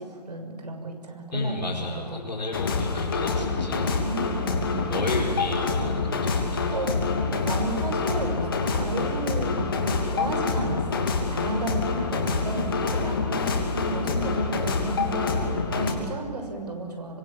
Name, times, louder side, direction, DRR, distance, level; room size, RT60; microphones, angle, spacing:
voice 1, 0.0-2.2 4.0-4.8 6.7-7.1 7.5-8.4 8.7-17.2, right 2 dB, 70° right, 4 dB, 6.4 m, -33 dB
voice 2, 1.3-3.9 4.9-6.9, left 2 dB, 80° left, -4 dB, 5.2 m, -32 dB
sound 1, 2.5-15.9, left 4 dB, 35° left, 2.9 m, -26 dB
25.0 x 22.5 x 8.8 m, 2.3 s
hypercardioid pair, 175°, 21 cm